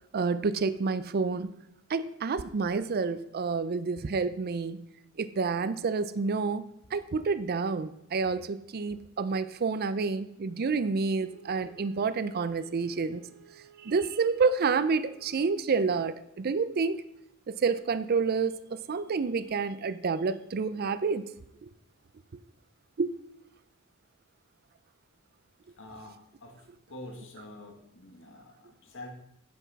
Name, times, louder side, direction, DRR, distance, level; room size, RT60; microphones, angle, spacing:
voice 1, 0.1-1.5 1.9-4.8 5.2-6.6 6.9-13.2 13.8-17.0 17.5-21.2 21.6-21.7 23.0-23.2, right 4 dB, 45° right, 14 dB, 0.4 m, -29 dB
Wind instrument woodwind instrument, 11.2-15.7, right 7 dB, 90° right, 2.0 m, -56 dB
voice 2, 25.8-29.1, left 1 dB, 65° left, 3 dB, 1.8 m, -47 dB
9.6 x 5.9 x 5.7 m, 0.80 s
head